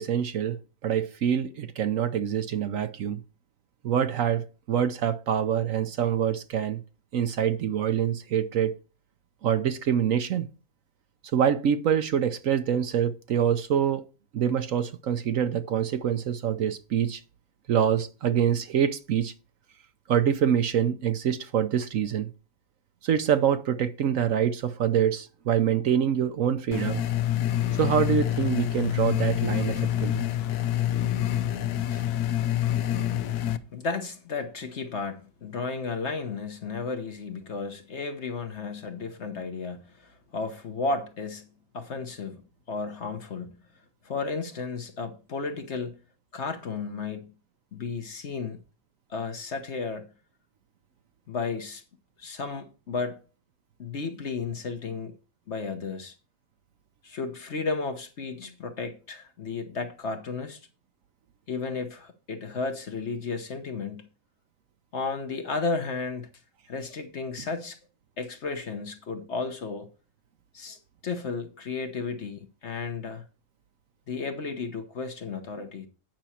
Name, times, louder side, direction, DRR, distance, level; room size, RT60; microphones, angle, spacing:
voice 1, 0.0-3.2 3.8-6.8 7.1-8.8 9.4-10.5 11.3-14.0 14.3-17.2 17.7-19.3 20.1-22.3 23.0-27.0 27.7-30.3, right 9 dB, 65° right, 1.0 m, -25 dB
sound 1, 26.7-33.6, left 12 dB, 80° left, 1.2 m, -27 dB
voice 2, 33.7-41.5 41.7-42.4 42.7-43.6 44.0-46.0 46.3-47.3 47.7-48.6 49.1-50.1 51.3-51.8 52.2-53.2 53.8-55.1 55.5-56.1 57.0-60.6 61.5-64.1 64.9-66.3 66.7-67.8 68.2-69.9 70.5-70.8 71.0-73.2 74.1-75.9, left 4 dB, 50° left, 1.2 m, -33 dB
9.1 x 6.1 x 4.3 m
omnidirectional pair, 1.6 m